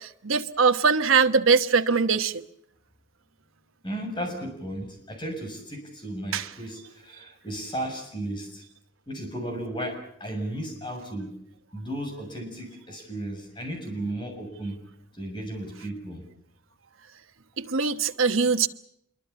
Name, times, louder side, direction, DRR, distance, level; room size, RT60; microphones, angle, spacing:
voice 1, 0.0-2.4 6.3-6.5 17.6-18.7, right 5 dB, 85° right, 1.2 m, -22 dB
voice 2, 3.8-8.6 9.1-11.4 11.7-14.8 15.1-16.2, right 1 dB, 25° left, 6.7 m, -34 dB
26.0 x 23.0 x 7.1 m
head